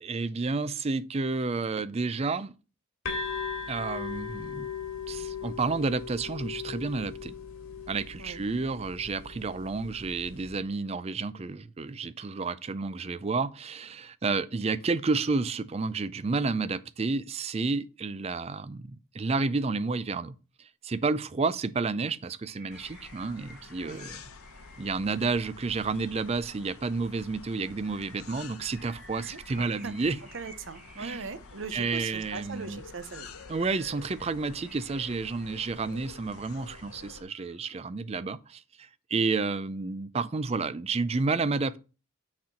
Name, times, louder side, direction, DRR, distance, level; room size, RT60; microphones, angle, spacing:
voice 1, 0.0-2.5 3.7-4.7 5.1-7.3 7.9-24.2 24.8-30.2 31.0-31.2 31.7-32.8 33.5-41.8, right 4 dB, 30° right, 0.4 m, -30 dB
sound 1, 3.0-10.5, left 6 dB, 65° left, 2.1 m, -38 dB
sound 2, 22.4-37.8, right 1 dB, ahead, 1.9 m, -55 dB
sound 3, 22.7-37.2, left 4 dB, 90° left, 0.9 m, -49 dB
voice 2, 29.3-29.9 30.3-33.4 39.1-39.2, right 4 dB, 60° right, 0.8 m, -40 dB
6.3 x 4.3 x 5.7 m
head